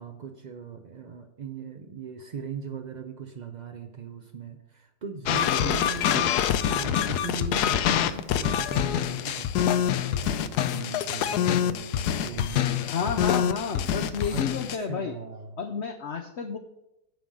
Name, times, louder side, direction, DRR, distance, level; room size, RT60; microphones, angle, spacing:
voice 1, 0.0-6.4 6.6-13.3 14.3-14.4 14.7-15.6, right 5 dB, 80° right, 4 dB, 0.4 m, -39 dB
sound 1, 5.3-14.8, left 10 dB, 75° left, 1.1 m, -26 dB
voice 2, 5.5-5.8 6.1-6.2 12.9-15.1 15.6-16.6, left 6 dB, 55° left, 4 dB, 0.8 m, -31 dB
10.5 x 3.9 x 7.4 m, 0.87 s
omnidirectional pair, 1.7 m